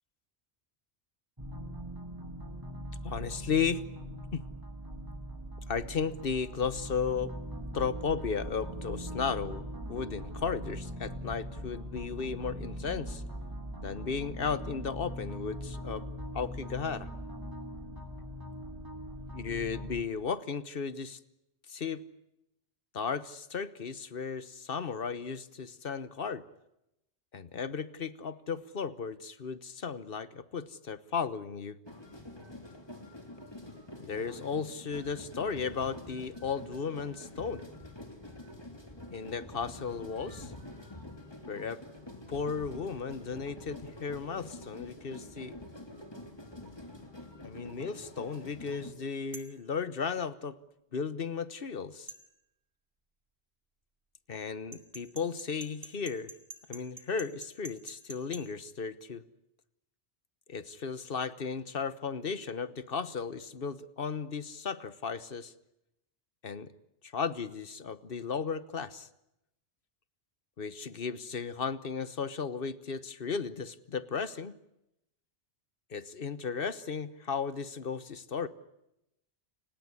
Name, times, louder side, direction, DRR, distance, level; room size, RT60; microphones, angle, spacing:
sound 1, 1.4-20.0, equal, 20° right, 2.7 m, -41 dB
voice 1, 3.0-3.8 4.3-4.4 5.7-7.3 7.7-13.2 13.8-16.1 16.3-17.1 19.3-21.2 21.7-22.0 22.9-26.4 27.3-31.8 34.0-37.7 39.1-40.5 41.5-41.8 42.3-45.6 47.4-50.6 50.9-52.1 54.3-56.3 56.7-59.2 60.5-65.5 66.4-66.7 67.0-69.1 70.6-74.6 75.9-78.5, left 6 dB, 55° left, 15 dB, 1.3 m, -35 dB
sound 2, 31.8-48.9, left 1 dB, 25° left, 3.0 m, -47 dB
sound 3, 49.3-49.6 52.1-52.2 54.7-58.4, right 3 dB, 40° right, 2.8 m, -46 dB
29.5 x 18.5 x 9.7 m, 0.85 s
omnidirectional pair, 1.1 m